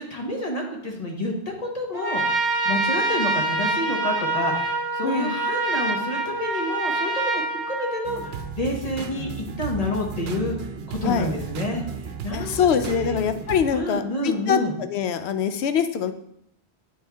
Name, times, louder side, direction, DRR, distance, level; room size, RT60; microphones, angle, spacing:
voice 1, 0.0-13.2 13.7-14.7, left 1 dB, 35° left, 0 dB, 1.0 m, -29 dB
Trumpet, 1.9-8.5, right 2 dB, 30° right, 0.5 m, -26 dB
voice 2, 5.0-5.3 11.0-11.3 12.3-14.6 14.9-16.1, left 7 dB, 75° left, 10 dB, 0.8 m, -23 dB
sound 1, 8.0-13.7, right 6 dB, 70° right, 0.8 m, -34 dB
8.4 x 4.4 x 3.4 m, 0.75 s
omnidirectional pair, 1.1 m